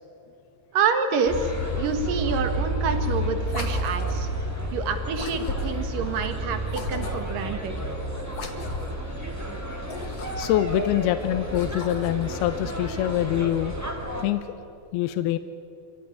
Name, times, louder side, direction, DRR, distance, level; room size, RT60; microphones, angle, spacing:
voice 1, 0.7-4.3 4.7-7.8, right 5 dB, 65° right, 7 dB, 3.1 m, -27 dB
sound 1, 1.2-14.2, right 1 dB, 5° right, 2.1 m, -31 dB
sound 2, 3.4-4.3 5.1-5.9 6.7-7.4 8.3-9.0 9.8-10.7 11.4-12.3, left 3 dB, 50° left, 2.4 m, -37 dB
voice 2, 10.4-13.8 14.2-14.4 14.9-15.4, left 13 dB, 85° left, 11 dB, 2.7 m, -24 dB
27.0 x 17.0 x 10.0 m, 2.9 s
omnidirectional pair, 4.4 m